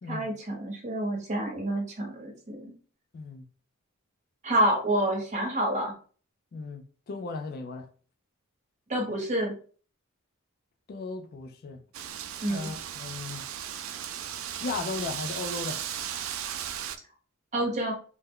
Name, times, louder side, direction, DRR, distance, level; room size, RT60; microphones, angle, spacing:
voice 1, 0.1-2.7 4.4-5.9 8.9-9.5 12.4-12.7 17.5-17.9, right 1 dB, 35° right, 0.9 m, -28 dB
voice 2, 3.1-3.5 6.5-7.9 10.9-11.8 12.5-13.4 14.6-15.8, left 3 dB, 45° left, 0.3 m, -36 dB
Wind, 11.9-17.0, right 9 dB, 70° right, 0.3 m, -36 dB
3.3 x 2.1 x 3.6 m
head